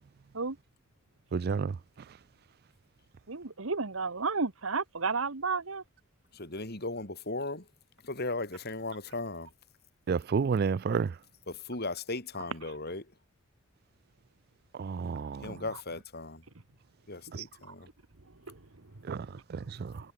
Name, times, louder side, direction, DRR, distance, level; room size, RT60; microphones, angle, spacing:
voice 1, 1.3-2.2 10.1-11.2 14.7-15.6 17.3-17.5 19.0-20.1, right 5 dB, 50° right, 0.4 m, -31 dB
voice 2, 3.3-5.8 12.6-12.7 15.7-15.8 17.3-17.4 17.7-20.1, right 4 dB, 80° right, 1.4 m, -35 dB
voice 3, 6.3-7.7 8.0-9.5 11.5-13.0 15.4-16.4 17.1-17.9, left 2 dB, 50° left, 4.4 m, -37 dB
head